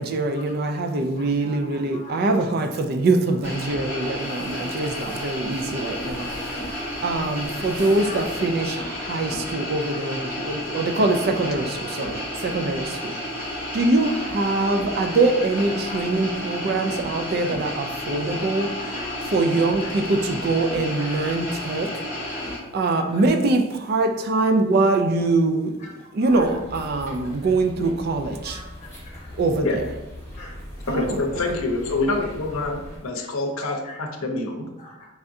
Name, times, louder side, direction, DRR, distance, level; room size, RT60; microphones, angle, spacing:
voice 1, 0.0-18.7 19.2-22.0 22.7-25.7 26.1-28.6 29.4-29.8 30.9-31.2, right 2 dB, 50° right, 5 dB, 0.3 m, -23 dB
voice 2, 1.2-2.2 3.9-4.1 5.7-5.8 8.0-8.2 8.7-8.8 9.7-9.8 10.2-10.4 12.9-13.0 15.8-16.0 16.7-16.8 18.5-19.2 19.8-19.9 21.1-21.6 26.2-26.5 28.4-29.2 30.4-30.5 33.8-34.0 34.8-35.1, left 2 dB, 35° left, -3 dB, 0.8 m, -43 dB
sound 1, 3.4-22.6, left 1 dB, 15° right, 1.2 m, -32 dB
sound 2, 4.1-8.8, right 1 dB, 90° right, 0.7 m, -45 dB
sound 3, 26.3-33.0, left 1 dB, 10° left, 1.5 m, -40 dB
voice 3, 30.9-34.7, left 2 dB, 85° left, 3 dB, 0.6 m, -26 dB
3.6 x 3.3 x 2.6 m, 0.99 s
head